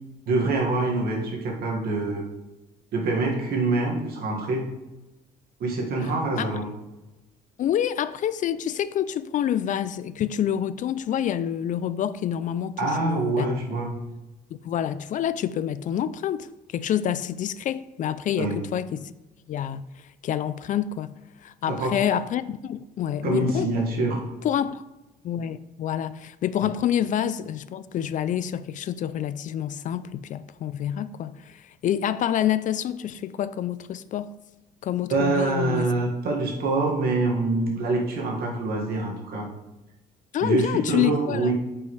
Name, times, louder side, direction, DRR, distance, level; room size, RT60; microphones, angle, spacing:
voice 1, 0.3-2.2 2.9-4.7 5.6-6.7 12.8-14.0 18.4-18.6 21.7-22.0 23.2-24.2 35.1-39.5 40.4-41.5, right 3 dB, 65° right, 2.0 m, -25 dB
voice 2, 7.6-13.8 14.6-19.1 19.5-23.7 24.4-24.8 25.2-34.3 34.8-35.9 40.3-41.5, left 10 dB, 50° left, 0.4 m, -27 dB
9.0 x 5.5 x 3.3 m
cardioid pair, 110°, 17 cm